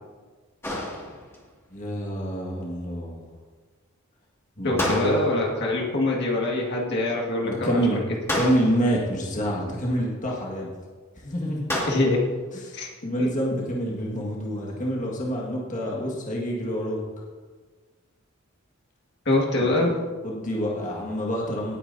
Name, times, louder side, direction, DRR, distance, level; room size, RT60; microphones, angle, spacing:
sound 1, 0.6-1.5 4.8-5.6 8.3-9.0 11.7-12.3, left 1 dB, 10° left, 2.1 m, -30 dB
voice 1, 1.7-3.3 4.6-5.2 7.4-8.0 8.4-10.7 11.2-11.7 12.5-17.0 19.8-19.9 20.2-21.8, equal, 35° left, -3 dB, 1.8 m, -27 dB
voice 2, 4.6-8.0 11.9-12.2 12.7-12.9 13.2-13.3 19.2-20.0, left 2 dB, 55° left, -2 dB, 1.8 m, -24 dB
18.0 x 8.9 x 2.7 m, 1.4 s
head